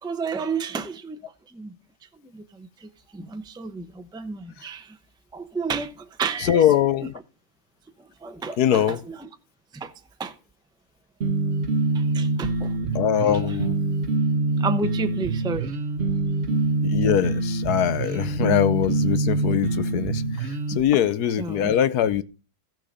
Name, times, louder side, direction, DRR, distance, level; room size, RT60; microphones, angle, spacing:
voice 1, 0.0-1.2 1.5-1.7 2.2-5.0 5.3-6.7 8.2-9.3 9.7-9.9 10.2-10.3 11.9-12.7 14.6-15.7 16.5-16.6 19.6-19.7 20.8-20.9 21.4-21.8, right 4 dB, 5° right, 0.4 m, -32 dB
voice 2, 6.4-7.1 8.6-9.0 12.9-13.8 16.9-22.2, left 10 dB, 70° left, 1.3 m, -22 dB
sound 1, 11.2-20.8, right 3 dB, 45° right, 1.2 m, -25 dB
15.0 x 6.2 x 5.0 m
omnidirectional pair, 1.8 m